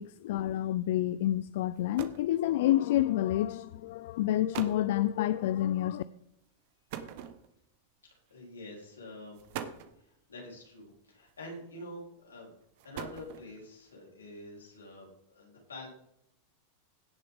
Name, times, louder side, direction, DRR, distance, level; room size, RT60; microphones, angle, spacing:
voice 1, 0.0-6.0, left 13 dB, 65° left, 15 dB, 0.4 m, -29 dB
sound 1, 1.4-1.5 1.7-2.3 3.3-3.6 4.2-4.3 4.5-4.9 6.9-7.7 8.7-8.8 9.3-10.0 11.3-11.8 12.6-13.6, right 9 dB, 60° right, 1.2 m, -42 dB
voice 2, 8.3-9.4 10.0-12.5 12.8-15.9, left 1 dB, 90° left, -2 dB, 3.7 m, -47 dB
17.0 x 6.8 x 3.6 m, 0.77 s
hypercardioid pair, 100°, 0 cm